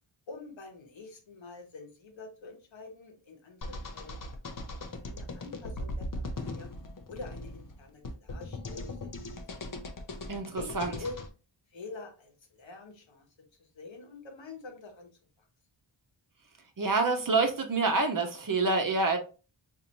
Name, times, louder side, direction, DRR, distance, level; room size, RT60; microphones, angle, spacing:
voice 1, 0.3-4.6 5.0-6.7 7.1-9.1 10.5-11.2 11.7-13.3 13.6-15.1, left 3 dB, 70° left, 1.1 m, -46 dB
sound 1, 3.6-11.3, left 1 dB, 45° left, 0.7 m, -39 dB
voice 2, 10.3-11.0 16.8-19.2, right 3 dB, 45° right, 0.8 m, -27 dB
3.9 x 2.6 x 2.9 m
wide cardioid pair, 80°, 47 cm